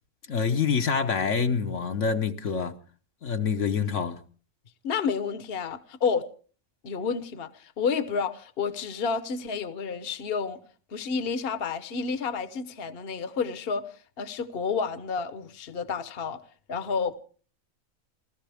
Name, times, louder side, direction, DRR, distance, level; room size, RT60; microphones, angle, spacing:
voice 1, 0.3-2.8 3.2-4.2, left 6 dB, 65° left, 1.3 m, -26 dB
voice 2, 4.8-6.3 6.8-10.6 10.9-16.4 16.7-17.1, left 5 dB, 50° left, 1.2 m, -30 dB
29.5 x 14.0 x 3.5 m
omnidirectional pair, 1.4 m